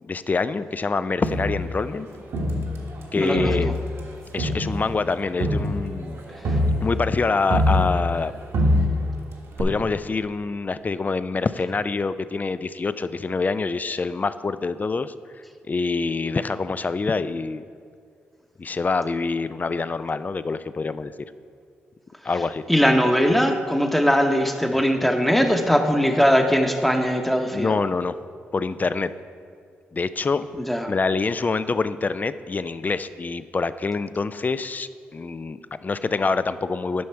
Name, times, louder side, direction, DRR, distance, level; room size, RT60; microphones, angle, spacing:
voice 1, 0.0-2.1 3.1-3.7 4.3-6.2 6.8-8.3 9.6-15.1 15.7-17.6 18.6-21.1 22.2-22.6 27.5-28.2 28.5-29.1 29.9-30.5 30.9-37.0, left 4 dB, 35° left, 13 dB, 0.4 m, -25 dB
Crowd, 1.2-3.0 3.3-8.3 8.5-9.2 9.6-9.7, left 1 dB, 70° right, 1.3 m, -24 dB
voice 2, 3.2-3.7 22.7-27.7 30.7-30.9, equal, 5° left, 4 dB, 0.9 m, -20 dB
9.5 x 5.7 x 4.4 m, 2.2 s
supercardioid pair, 45°, 5 cm